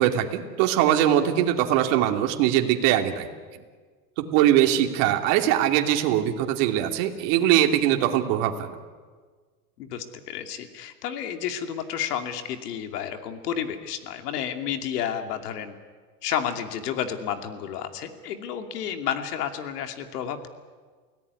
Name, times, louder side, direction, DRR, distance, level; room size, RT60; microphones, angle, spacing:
voice 1, 0.0-3.3 4.3-8.7, right 11 dB, 50° right, 4 dB, 2.8 m, -21 dB
voice 2, 9.8-15.7 16.2-20.5, left 9 dB, 75° left, 6 dB, 2.7 m, -31 dB
29.0 x 17.5 x 9.6 m, 1.5 s
supercardioid pair, 150°, 47 cm